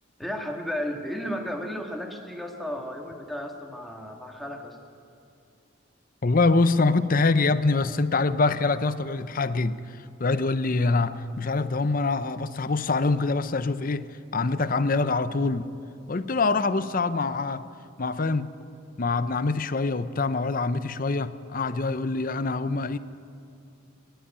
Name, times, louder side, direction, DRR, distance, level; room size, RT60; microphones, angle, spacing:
voice 1, 0.2-4.8, equal, ahead, 1.8 m, -34 dB
voice 2, 6.2-9.8 10.2-14.1 14.3-15.7 16.1-17.6 18.0-18.5 19.0-23.0, left 3 dB, 45° left, 0.7 m, -24 dB
23.0 x 11.5 x 9.8 m
head